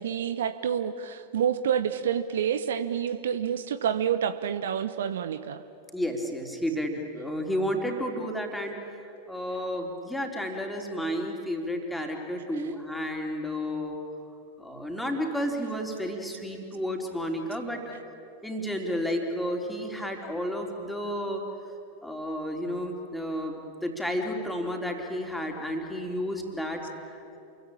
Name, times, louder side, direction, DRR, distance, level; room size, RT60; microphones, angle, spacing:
voice 1, 0.0-5.6 12.5-12.7, right 8 dB, 60° right, 13 dB, 0.9 m, -28 dB
voice 2, 5.9-8.9 9.3-14.0 14.6-17.9 18.4-21.4 22.0-27.4, equal, ahead, 1 dB, 3.9 m, -32 dB
28.5 x 23.0 x 8.7 m, 2.7 s
figure-of-eight pair, 90°, 0 cm